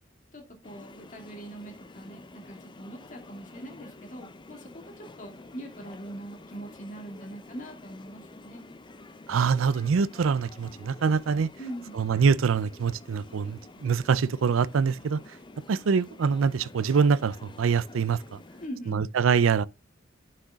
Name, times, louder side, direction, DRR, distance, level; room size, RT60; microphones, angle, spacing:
voice 1, 0.3-8.7 11.6-12.0 18.6-19.1, right 1 dB, 40° left, 2.4 m, -42 dB
sound 1, 0.6-18.7, left 2 dB, 25° left, 0.6 m, -49 dB
voice 2, 9.3-11.5 11.9-15.2 15.7-18.4 18.9-19.7, right 6 dB, 85° right, 0.4 m, -24 dB
11.5 x 6.5 x 2.4 m
head